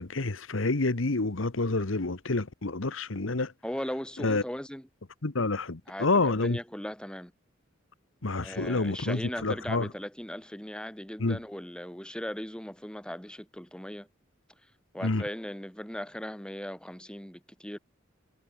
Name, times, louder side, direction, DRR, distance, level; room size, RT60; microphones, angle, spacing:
voice 1, 0.0-3.5 4.2-4.4 5.2-6.6 8.2-9.9 11.2-11.4 15.0-15.2, left 3 dB, 75° left, 1.3 m, -28 dB
voice 2, 3.6-4.9 5.9-7.3 8.4-14.1 14.9-17.8, equal, 5° left, 2.1 m, -38 dB
head